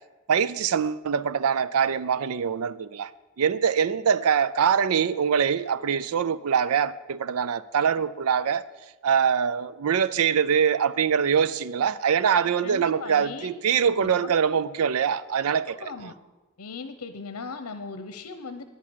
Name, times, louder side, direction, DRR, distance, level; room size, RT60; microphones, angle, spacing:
voice 1, 0.3-3.1 3.4-8.6 9.0-15.8, right 7 dB, 75° right, 0.4 m, -23 dB
voice 2, 12.6-13.5 14.0-14.3 15.7-16.2 16.6-18.6, left 4 dB, 80° left, 0.9 m, -38 dB
10.5 x 8.5 x 8.7 m
head